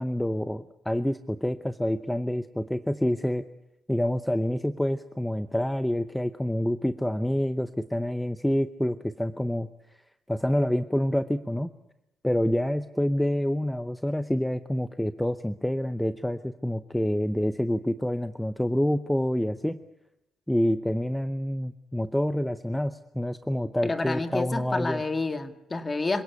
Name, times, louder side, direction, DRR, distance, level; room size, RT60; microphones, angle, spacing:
voice 1, 0.0-3.4 3.9-10.0 10.3-11.7 12.2-19.8 20.5-25.0, equal, 5° left, 12 dB, 0.8 m, -27 dB
voice 2, 23.8-26.2, left 3 dB, 25° left, 9 dB, 2.0 m, -29 dB
26.5 x 17.0 x 8.4 m, 0.90 s
cardioid pair, 90°, 0 cm